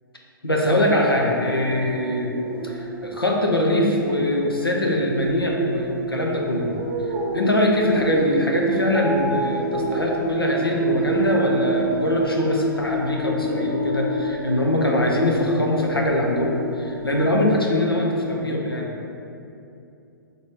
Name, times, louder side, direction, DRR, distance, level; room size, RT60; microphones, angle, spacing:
voice 1, 0.4-2.3 2.6-6.8 7.3-18.9, left 1 dB, 90° left, -1 dB, 0.7 m, -22 dB
sound 1, 0.7-17.8, right 2 dB, 15° right, 0.3 m, -29 dB
3.9 x 2.9 x 3.6 m, 2.7 s
figure-of-eight pair, 120°, 12 cm